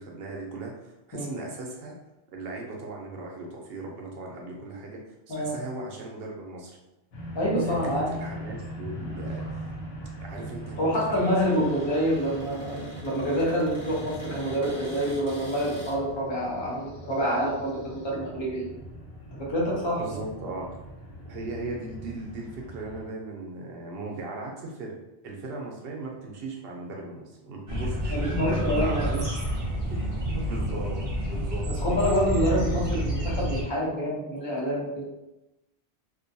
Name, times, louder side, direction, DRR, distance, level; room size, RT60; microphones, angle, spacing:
voice 1, 0.0-2.0 2.3-6.7 7.8-9.8 10.2-11.8 20.0-20.7 21.3-25.0 25.2-29.3 29.5-29.6 29.9-31.7 32.4-32.8, right 2 dB, 70° right, -1 dB, 0.8 m, -37 dB
sound 1, 7.1-23.1, equal, 70° left, 0.9 m, -41 dB
voice 2, 7.3-8.1 10.8-18.7 19.4-20.0 28.1-29.1 31.7-34.9, equal, 30° left, -5 dB, 0.6 m, -27 dB
Cupboard open or close, 9.3-16.0, equal, 15° left, 1.0 m, -43 dB
sound 2, 27.7-33.6, equal, 40° right, 0.5 m, -29 dB
2.4 x 2.2 x 2.6 m, 0.98 s
omnidirectional pair, 1.1 m